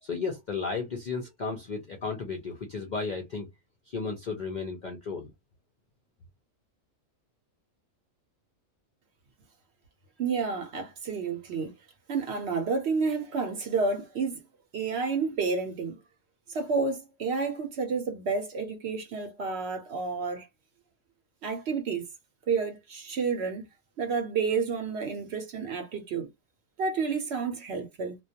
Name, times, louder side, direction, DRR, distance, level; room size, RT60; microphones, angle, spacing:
voice 1, 0.0-3.5 3.9-5.3, left 4 dB, 60° left, 0.4 m, -34 dB
voice 2, 10.2-11.7 12.1-14.4 14.7-16.0 16.5-20.5 21.4-22.1 22.5-23.7 24.0-26.3 26.8-28.2, right 4 dB, 60° right, 0.8 m, -30 dB
2.2 x 2.2 x 2.6 m
omnidirectional pair, 1.4 m